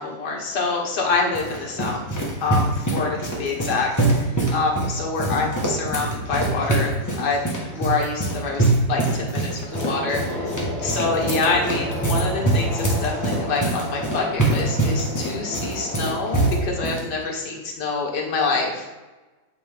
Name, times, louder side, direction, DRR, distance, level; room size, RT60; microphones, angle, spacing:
voice 1, 0.0-2.0 2.4-7.4 7.7-10.5 10.8-18.9, left 4 dB, 60° left, -1 dB, 1.8 m, -26 dB
sound 1, 0.9-17.0, right 2 dB, 15° left, 0.7 m, -24 dB
sound 2, 9.7-16.6, left 1 dB, 10° right, 2.1 m, -32 dB
8.2 x 3.9 x 3.5 m, 1.2 s
omnidirectional pair, 2.1 m